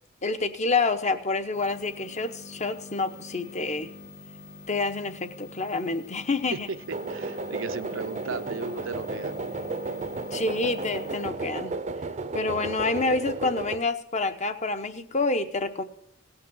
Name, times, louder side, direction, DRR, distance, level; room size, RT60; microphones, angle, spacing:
voice 1, 0.2-3.9 4.7-6.7 10.3-11.7 12.3-15.8, left 3 dB, 35° left, 0.9 m, -28 dB
sound 1, 1.5-11.3, left 3 dB, 55° left, 1.5 m, -45 dB
voice 2, 6.5-9.4 12.6-13.0, right 4 dB, 80° right, 0.7 m, -36 dB
sound 2, 6.9-13.8, right 3 dB, 35° right, 0.6 m, -33 dB
17.5 x 5.9 x 7.7 m
head